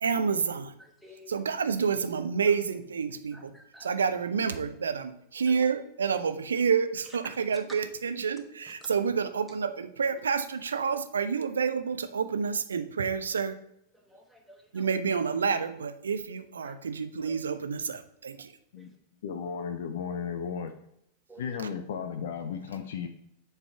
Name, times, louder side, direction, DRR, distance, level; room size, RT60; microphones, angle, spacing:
voice 1, 0.0-0.7 1.3-3.5 3.8-13.6 14.7-18.5 21.6-21.7, right 6 dB, 70° right, 0.5 m, -29 dB
voice 2, 0.8-1.3 3.3-4.0 5.5-5.6 7.0-7.4 10.2-10.3 10.9-11.0 13.9-14.9 16.6-16.7 17.2-17.4 18.8-19.0 21.3-21.4, equal, ahead, 1.1 m, -52 dB
voice 3, 19.2-20.7 21.4-23.1, left 6 dB, 60° left, 0.4 m, -34 dB
7.4 x 3.3 x 4.3 m
figure-of-eight pair, 90°, 0 cm